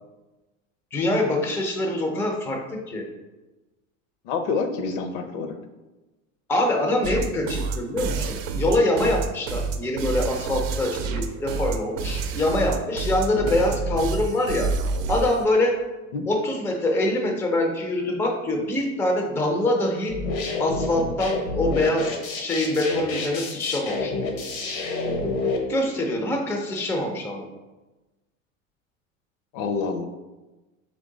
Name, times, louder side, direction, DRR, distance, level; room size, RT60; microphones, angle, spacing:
voice 1, 0.9-3.1 6.5-14.7 15.1-15.8 16.2-20.2 20.6-24.3 25.7-27.4, left 1 dB, 5° left, 2 dB, 0.4 m, -24 dB
voice 2, 4.2-5.5 13.3-13.5 16.1-16.3 29.5-30.0, left 4 dB, 60° left, 7 dB, 0.7 m, -27 dB
sound 1, 7.0-15.5, right 4 dB, 75° right, 0.6 m, -28 dB
sound 2, 20.1-25.6, left 3 dB, 75° left, 1.0 m, -28 dB
3.7 x 3.0 x 3.8 m, 1.1 s
hypercardioid pair, 105°, 40 cm